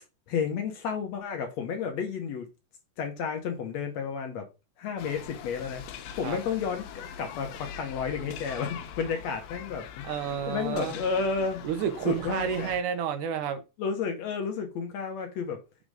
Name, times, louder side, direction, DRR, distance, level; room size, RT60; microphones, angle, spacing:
voice 1, 0.3-2.5 3.0-4.5 4.8-5.8 6.2-10.1 10.5-11.6 12.1-12.7 13.8-15.6, left 6 dB, 65° left, 2.0 m, -31 dB
sound 1, 5.0-12.8, left 8 dB, 90° left, 2.6 m, -43 dB
voice 2, 10.0-11.0 11.6-13.6, right 8 dB, 75° right, 2.3 m, -30 dB
6.4 x 3.8 x 4.9 m
omnidirectional pair, 3.9 m